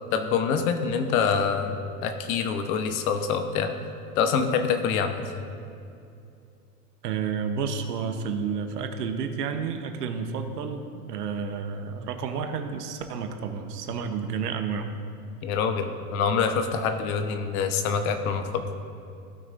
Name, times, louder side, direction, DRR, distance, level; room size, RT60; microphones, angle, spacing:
voice 1, 0.1-3.7 4.2-5.2 15.4-18.6, left 6 dB, 60° left, 7 dB, 1.1 m, -25 dB
voice 2, 7.0-14.9, right 6 dB, 80° right, 6 dB, 1.0 m, -31 dB
16.0 x 6.1 x 2.6 m, 2.5 s
hypercardioid pair, 105°, 47 cm